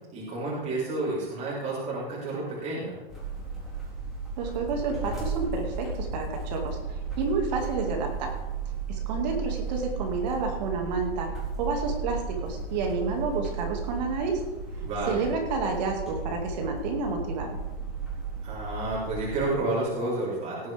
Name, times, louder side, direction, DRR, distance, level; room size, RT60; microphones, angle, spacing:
voice 1, 0.1-3.0 14.8-15.2 18.4-20.7, right 2 dB, 25° right, -7 dB, 3.8 m, -30 dB
sound 1, 3.1-19.5, right 5 dB, ahead, 3.9 m, -34 dB
voice 2, 4.4-8.3 8.9-11.3 11.6-14.4 15.1-17.6, right 4 dB, 45° right, 2 dB, 2.3 m, -30 dB
17.5 x 10.0 x 3.5 m, 1.1 s
hypercardioid pair, 140°, 30 cm